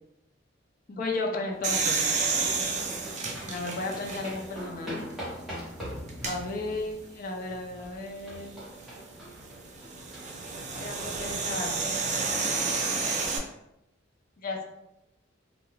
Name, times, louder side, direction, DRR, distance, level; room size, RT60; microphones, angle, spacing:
voice 1, 0.9-2.0 3.5-5.1 6.2-8.6 10.8-11.8 14.4-14.6, left 2 dB, 45° left, 2 dB, 0.4 m, -34 dB
sound 1, 1.5-13.3, equal, ahead, 1.0 m, -44 dB
sound 2, 1.6-4.6 5.1-5.2 6.1-6.4 8.5-13.4, right 4 dB, 40° right, 0.4 m, -30 dB
2.4 x 2.2 x 3.1 m, 0.87 s
head